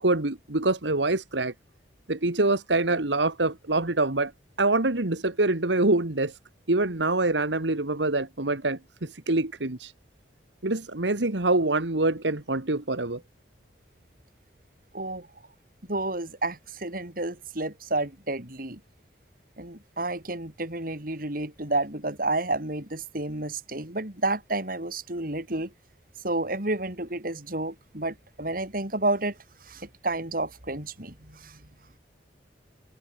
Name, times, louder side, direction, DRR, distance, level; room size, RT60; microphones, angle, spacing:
voice 1, 0.0-1.5 2.1-4.3 4.6-6.3 6.7-9.9 10.6-13.2, right 2 dB, 80° right, 1.9 m, -25 dB
voice 2, 14.9-15.3 15.9-18.8 19.6-25.7 26.2-29.4 29.7-31.6, right 2 dB, 50° right, 3.9 m, -30 dB
head